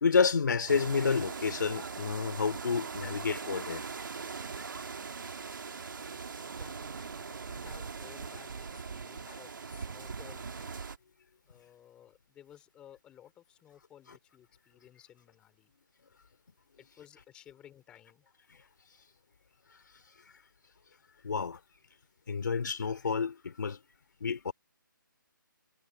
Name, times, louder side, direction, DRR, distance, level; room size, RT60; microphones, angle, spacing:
voice 1, 0.0-3.8 9.3-9.4 21.2-21.6 22.3-23.8 24.2-24.5, left 5 dB, 60° left, 2.7 m, -29 dB
sound 1, 0.7-11.0, right 5 dB, 70° right, 2.2 m, -41 dB
voice 2, 6.4-10.7 11.5-15.7 16.8-18.4, left 11 dB, 10° left, 4.3 m, -57 dB
hypercardioid pair, 170°, 11 cm